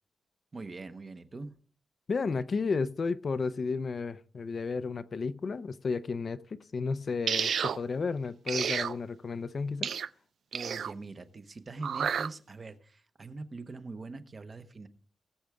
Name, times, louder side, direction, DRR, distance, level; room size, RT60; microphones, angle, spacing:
voice 1, 0.5-1.5 10.5-14.9, right 3 dB, 30° right, 0.9 m, -43 dB
voice 2, 2.1-9.9, left 4 dB, 40° left, 0.5 m, -32 dB
sound 1, 7.3-7.8 8.5-8.9 9.8-10.1 10.5-10.9 11.8-12.3, right 7 dB, 70° right, 0.4 m, -30 dB
19.5 x 7.9 x 3.5 m
wide cardioid pair, 170°, 0 cm